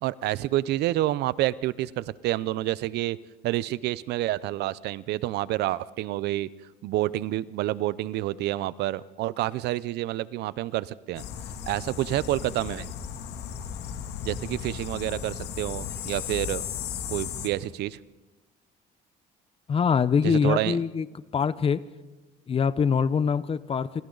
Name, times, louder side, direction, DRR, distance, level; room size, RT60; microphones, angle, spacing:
voice 1, 0.0-3.2 3.4-6.5 6.8-11.2 11.7-12.9 14.2-16.6 17.1-18.0 20.2-20.8, right 15 dB, 80° right, 19 dB, 0.6 m, -28 dB
sound 1, 11.2-17.5, left 8 dB, 80° left, 2.5 m, -35 dB
voice 2, 19.7-21.1 21.3-21.8 22.5-24.0, left 6 dB, 35° left, 16 dB, 0.8 m, -24 dB
27.5 x 26.5 x 4.0 m, 1.2 s
cardioid pair, 110°, 17 cm